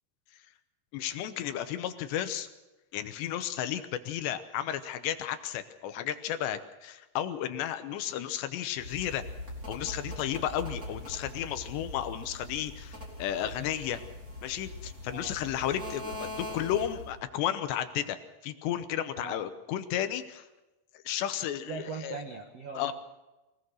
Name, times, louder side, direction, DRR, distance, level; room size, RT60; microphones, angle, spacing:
voice 1, 0.9-2.5 2.9-9.2 9.7-14.0 14.4-18.2 18.4-20.5 21.1-22.2 22.7-22.9, left 11 dB, 75° left, 9 dB, 3.0 m, -33 dB
sound 1, 8.8-17.2, left 1 dB, 20° right, 4.6 m, -42 dB
voice 2, 21.7-22.9, right 4 dB, 65° right, 2 dB, 1.5 m, -39 dB
24.5 x 18.0 x 6.3 m, 1.0 s
omnidirectional pair, 5.3 m